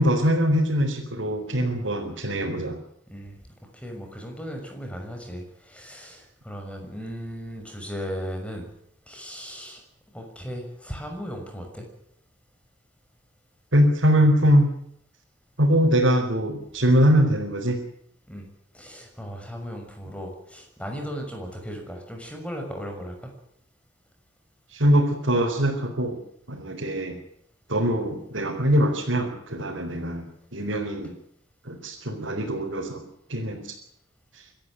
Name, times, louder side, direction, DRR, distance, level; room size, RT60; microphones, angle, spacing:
voice 1, 0.0-2.8 13.7-14.7 15.6-17.8 24.7-26.2 26.5-27.2 27.7-30.3 30.5-31.1 31.6-33.0 33.3-33.7, equal, 85° right, -2 dB, 4.5 m, -22 dB
voice 2, 3.1-3.4 3.7-8.7 9.1-9.8 10.1-11.9 18.3-18.5 18.7-23.3, equal, 5° left, 3 dB, 6.3 m, -36 dB
25.5 x 14.0 x 9.6 m, 0.72 s
head